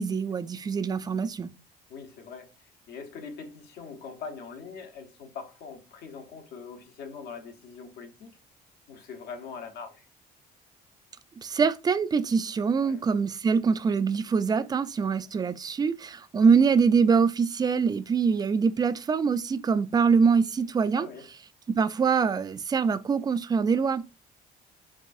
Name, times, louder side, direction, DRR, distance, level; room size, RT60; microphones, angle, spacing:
voice 1, 0.0-1.5 11.4-21.1 21.7-24.0, right 5 dB, 25° right, 0.3 m, -24 dB
voice 2, 1.9-8.3 8.9-10.1 12.8-13.0 15.0-15.1 20.9-21.3, left 5 dB, 75° left, 1.1 m, -42 dB
4.7 x 2.3 x 2.6 m
cardioid pair, 110°, 17 cm